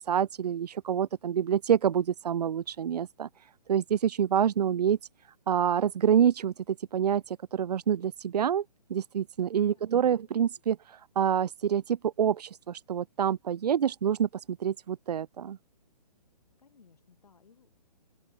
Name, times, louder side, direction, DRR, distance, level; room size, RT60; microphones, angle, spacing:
voice 1, 0.1-3.3 3.7-5.0 5.5-8.6 8.9-15.6, right 8 dB, 70° right, 0.4 m, -27 dB
voice 2, 9.6-9.9 16.6-17.7, left 5 dB, 65° left, 4.5 m, -61 dB
open air
figure-of-eight pair, 130°, 21 cm